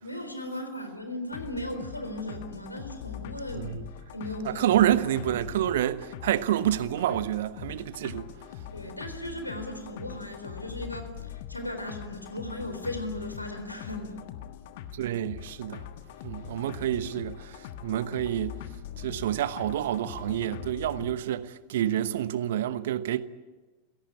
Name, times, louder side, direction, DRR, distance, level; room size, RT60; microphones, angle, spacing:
voice 1, 0.0-3.7 4.1-4.6 8.7-14.3 16.9-17.0, left 1 dB, 85° left, 3.9 m, -37 dB
sound 1, 1.3-21.1, left 10 dB, 50° left, 1.4 m, -42 dB
voice 2, 3.5-3.9 4.4-8.3 14.9-15.9 16.2-18.6 19.0-23.2, right 12 dB, 55° right, 1.0 m, -28 dB
28.0 x 18.0 x 8.6 m
figure-of-eight pair, 90°, 0 cm